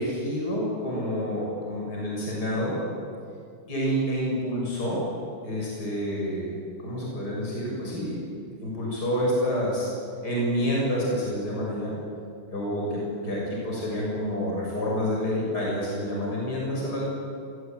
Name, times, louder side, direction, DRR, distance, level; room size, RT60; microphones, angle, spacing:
voice 1, 0.0-2.8 3.7-5.1 5.4-6.5 6.8-8.2 8.6-9.9 10.2-11.9 12.5-17.0, equal, 45° left, -4 dB, 7.7 m, -28 dB
27.0 x 23.5 x 9.3 m, 2.4 s
omnidirectional pair, 2.4 m